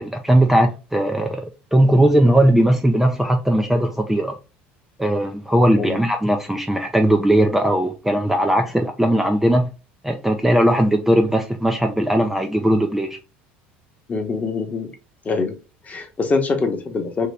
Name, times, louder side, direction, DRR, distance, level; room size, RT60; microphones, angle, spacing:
voice 1, 0.0-4.4 5.0-9.7 10.0-13.2, right 1 dB, 5° right, 0.4 m, -18 dB
voice 2, 14.1-14.9 15.2-15.5 15.9-17.3, left 4 dB, 30° left, 1.0 m, -23 dB
2.8 x 2.8 x 3.2 m
hypercardioid pair, 80°, 5 cm